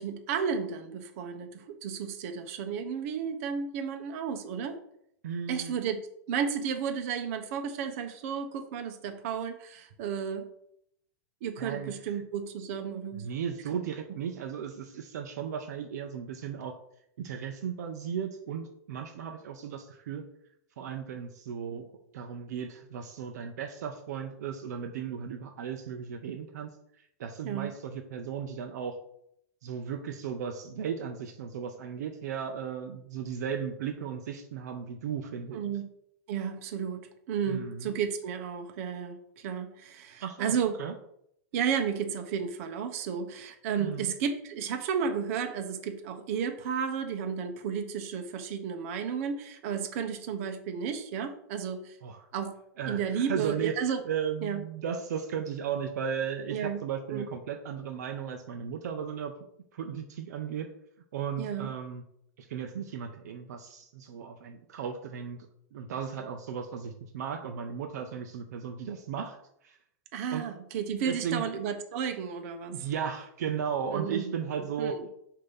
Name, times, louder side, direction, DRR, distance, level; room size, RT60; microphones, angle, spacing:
voice 1, 0.0-4.8 5.5-10.5 11.4-13.3 13.7-13.8 27.4-27.7 35.5-35.9 36.3-40.7 41.5-52.0 52.3-52.6 52.9-54.0 54.4-54.6 56.5-56.8 57.1-57.3 61.4-61.7 70.1-72.8 73.9-75.0, right 7 dB, 55° right, 7 dB, 0.9 m, -33 dB
voice 2, 5.2-5.8 11.6-11.9 13.1-16.7 17.2-20.2 20.8-21.9 22.1-26.7 27.2-29.0 29.6-35.7 37.5-37.9 40.2-40.5 40.8-40.9 43.8-44.1 52.0-52.3 52.8-59.3 59.7-60.7 61.1-62.0 62.4-65.4 65.7-69.4 69.6-69.8 70.3-70.5 71.1-71.4 72.7-74.9, right 7 dB, 75° right, 5 dB, 0.7 m, -35 dB
6.6 x 2.9 x 5.5 m, 0.73 s
supercardioid pair, 145°, 9 cm